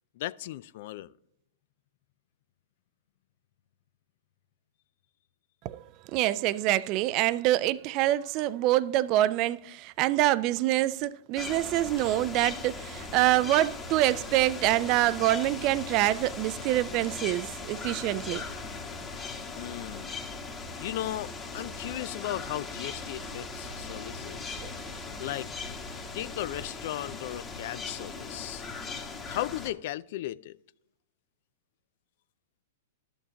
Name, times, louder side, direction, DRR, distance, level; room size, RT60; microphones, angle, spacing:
voice 1, 0.2-1.1 19.5-20.2 20.8-24.6 25.2-25.5 26.1-28.6 29.3-30.6, left 14 dB, 55° left, 0.3 m, -36 dB
voice 2, 6.1-18.4 24.6-24.7, right 15 dB, 40° right, 0.4 m, -26 dB
sound 1, 11.4-29.7, left 4 dB, 20° left, 1.3 m, -39 dB
12.0 x 7.0 x 2.9 m
hypercardioid pair, 120°, 0 cm